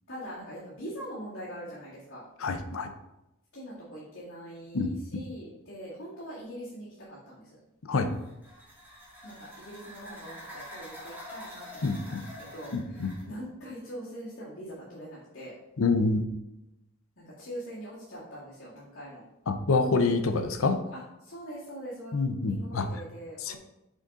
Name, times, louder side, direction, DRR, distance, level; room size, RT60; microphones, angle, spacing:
voice 1, 0.1-2.2 3.5-7.4 9.2-15.5 17.2-19.2 20.9-22.1 22.5-23.6, equal, 60° left, -10 dB, 1.9 m, -43 dB
voice 2, 2.4-2.9 4.7-5.2 7.8-8.1 11.8-12.2 12.7-13.1 15.8-16.2 19.5-20.8 22.1-22.9 23.4-23.6, left 3 dB, 80° left, 8 dB, 0.6 m, -27 dB
sound 1, 8.0-13.3, equal, 10° right, 1.7 m, -46 dB
6.4 x 3.9 x 3.7 m, 0.91 s
head